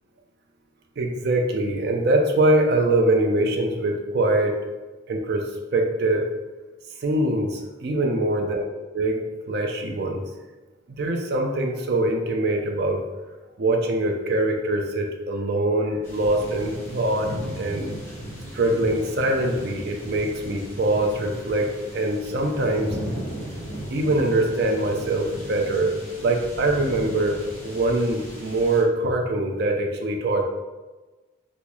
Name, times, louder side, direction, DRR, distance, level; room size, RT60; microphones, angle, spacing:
voice 1, 1.0-4.5 5.1-5.4 5.7-6.3 7.0-8.7 8.9-10.2 10.9-13.0 13.6-17.9 18.5-23.0 23.9-25.9 26.2-30.4, right 2 dB, 55° right, 3 dB, 0.4 m, -23 dB
sound 1, 16.0-28.8, equal, 10° left, 0.7 m, -36 dB
3.6 x 2.0 x 3.0 m, 1.2 s
head